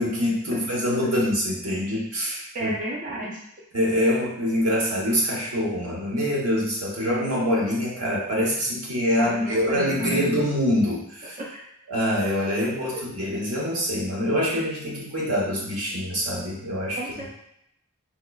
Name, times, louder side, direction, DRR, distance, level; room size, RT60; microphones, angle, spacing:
voice 1, 0.0-2.7 3.7-11.4 11.9-17.0, equal, 85° right, -4 dB, 1.1 m, -25 dB
voice 2, 2.5-3.4 9.2-10.3 11.4-11.7 12.9-13.1 17.0-17.3, right 1 dB, 35° right, -4 dB, 0.5 m, -32 dB
3.7 x 3.0 x 2.3 m, 0.74 s
head